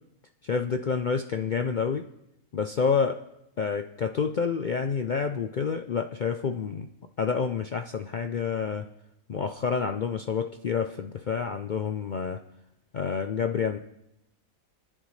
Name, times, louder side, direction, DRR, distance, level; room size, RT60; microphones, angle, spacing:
voice 1, 0.4-2.0 2.5-3.2 3.6-6.9 7.2-8.9 9.3-12.4 12.9-13.8, left 6 dB, 65° left, 7 dB, 0.4 m, -28 dB
29.5 x 10.0 x 3.2 m, 0.86 s
omnidirectional pair, 1.5 m